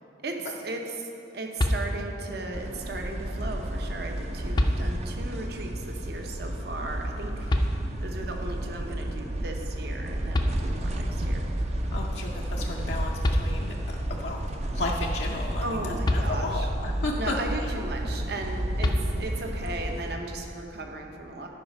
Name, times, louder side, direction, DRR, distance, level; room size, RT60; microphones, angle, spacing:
voice 1, 0.2-7.5 8.0-11.4 15.6-16.7 17.2-21.5, right 2 dB, 60° right, 2 dB, 0.9 m, -36 dB
sound 1, 1.6-2.3 3.8-3.9 4.5-5.3 7.5-8.2 10.0-10.1 10.3-11.2 12.9-13.0 13.2-14.0 16.0-16.9 18.8-19.6, left 1 dB, 25° left, 0.5 m, -28 dB
sound 2, 2.5-20.1, right 1 dB, 35° right, 0.5 m, -32 dB
voice 2, 11.9-13.1 13.4-13.7 14.1-14.4 14.7-17.4, left 2 dB, 70° left, -1 dB, 0.6 m, -33 dB
10.5 x 4.9 x 5.3 m, 2.7 s
head